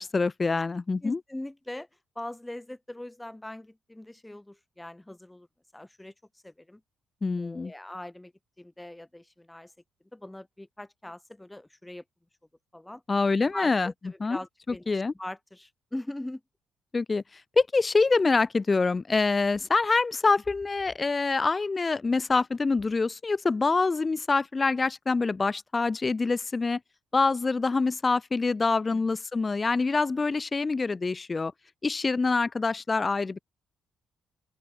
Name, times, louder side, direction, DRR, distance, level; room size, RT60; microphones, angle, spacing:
voice 1, 0.0-1.2 7.2-7.7 13.1-13.9 14.2-14.4 14.9-15.1 16.9-17.2 17.6-26.8 27.1-31.5 31.8-33.4, left 4 dB, 25° left, 0.6 m, -25 dB
voice 2, 1.0-1.9 2.2-5.5 5.7-6.1 6.4-6.8 7.4-8.3 8.6-9.7 10.1-12.0 12.7-13.0 13.5-16.4, left 1 dB, 10° left, 3.5 m, -41 dB
open air
cardioid pair, 90°, 0 cm